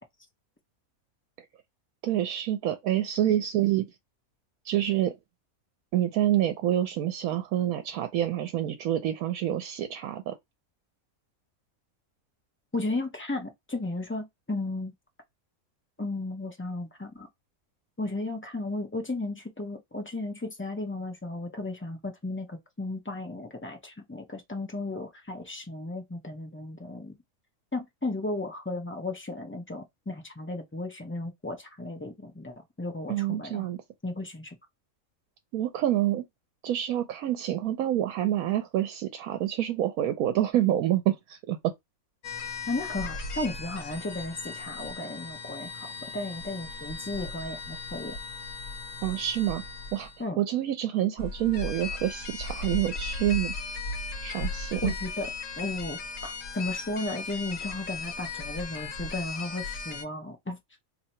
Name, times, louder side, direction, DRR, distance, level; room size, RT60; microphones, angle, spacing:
voice 1, 2.0-3.9 4.6-5.2 5.9-10.3 33.1-33.8 35.5-36.2 36.6-41.7 49.0-49.6 49.9-50.1 50.4-53.5 54.2-54.9, right 12 dB, 90° right, 1.1 m, -27 dB
voice 2, 12.7-14.9 16.0-17.3 18.0-27.2 27.7-33.7 34.0-34.6 42.7-48.2 50.2-50.4 54.8-55.3 55.6-60.6, left 2 dB, 15° left, 0.5 m, -35 dB
sound 1, 42.2-50.2 51.2-60.0, left 3 dB, 70° left, 1.1 m, -37 dB
2.8 x 2.8 x 4.3 m
omnidirectional pair, 1.5 m